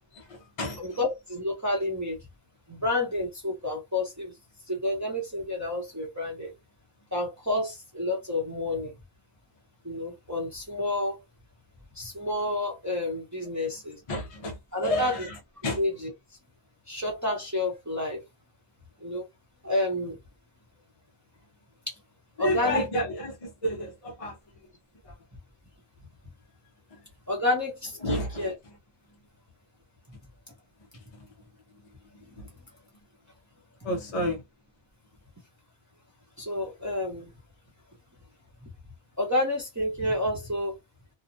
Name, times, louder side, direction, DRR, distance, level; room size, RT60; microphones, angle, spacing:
voice 1, 0.2-0.8 14.1-15.4 15.6-15.8 22.4-24.4 25.1-25.2 28.0-28.4 31.1-31.3 32.4-32.5 33.8-34.4, left 1 dB, 35° left, 0.6 m, -30 dB
voice 2, 0.8-2.2 2.7-4.3 4.7-6.5 7.1-8.9 9.8-11.2 11.9-14.0 14.7-15.3 15.8-16.1 16.9-18.2 19.0-19.2 19.6-20.2 21.9-22.0 22.4-22.9 27.3-28.5 36.4-37.3 39.2-40.8, left 1 dB, 20° right, 0.7 m, -29 dB
2.7 x 2.1 x 2.7 m
omnidirectional pair, 1.2 m